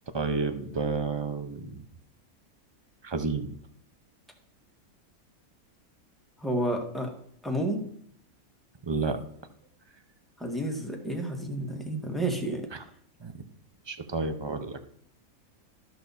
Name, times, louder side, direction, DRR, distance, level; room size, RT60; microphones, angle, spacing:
voice 1, 0.1-1.8 3.0-3.5 8.8-9.2 12.7-12.8 13.2-13.3 13.9-14.8, right 4 dB, 25° right, 9 dB, 0.6 m, -30 dB
voice 2, 6.4-7.1 7.4-7.8 10.4-12.6, right 1 dB, ahead, 1 dB, 1.7 m, -30 dB
13.5 x 6.3 x 4.2 m, 0.65 s
omnidirectional pair, 1.6 m